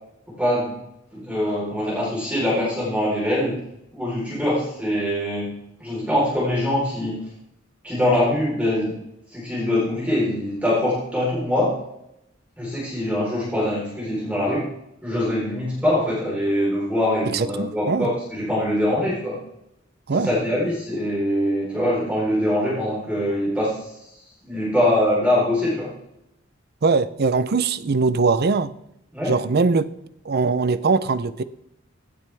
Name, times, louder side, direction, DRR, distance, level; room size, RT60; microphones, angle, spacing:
voice 1, 0.3-0.8 1.1-3.6 3.9-5.5 5.8-7.2 7.8-9.0 9.3-11.8 12.6-14.7 15.0-19.4 20.1-24.1 24.4-25.9 29.1-29.4, left 1 dB, 5° right, -7 dB, 3.9 m, -23 dB
voice 2, 17.3-18.1 20.1-20.3 26.8-28.7 29.3-29.9 30.2-31.4, right 4 dB, 50° right, 15 dB, 0.6 m, -21 dB
16.5 x 8.6 x 3.5 m, 0.81 s
head